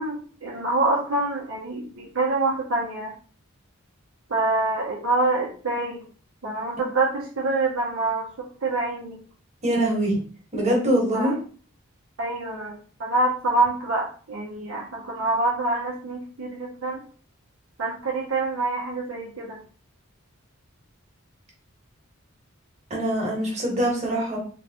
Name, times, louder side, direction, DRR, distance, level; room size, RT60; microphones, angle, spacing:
voice 1, 0.0-3.1 4.3-6.0 6.4-9.2 11.1-11.3 12.2-17.0 17.8-19.6, right 2 dB, 70° right, -3 dB, 0.8 m, -26 dB
voice 2, 9.6-10.1 10.5-11.3 22.9-24.4, right 1 dB, 35° right, -2 dB, 1.4 m, -23 dB
3.4 x 3.0 x 2.8 m, 0.41 s
head